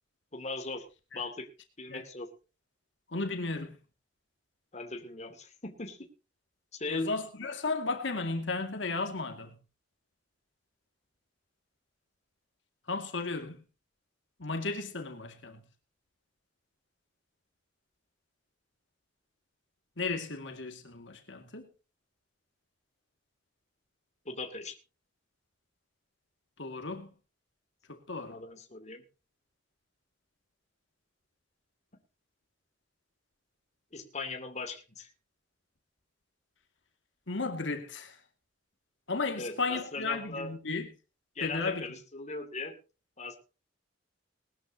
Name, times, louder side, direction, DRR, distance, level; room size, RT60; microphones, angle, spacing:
voice 1, 0.3-0.9 1.1-1.5 1.8-2.3 4.7-6.1 6.7-7.1 24.2-24.8 28.2-29.0 33.9-35.1 39.4-40.5 41.4-42.8 43.2-43.4, left 3 dB, 40° left, 2.6 m, -39 dB
voice 2, 3.1-3.8 6.9-9.5 12.9-13.6 14.4-15.6 20.0-21.7 26.6-27.1 27.9-28.4 37.3-38.2 39.1-40.9 41.4-41.9, left 3 dB, 75° left, 2.3 m, -34 dB
20.5 x 13.0 x 2.9 m
head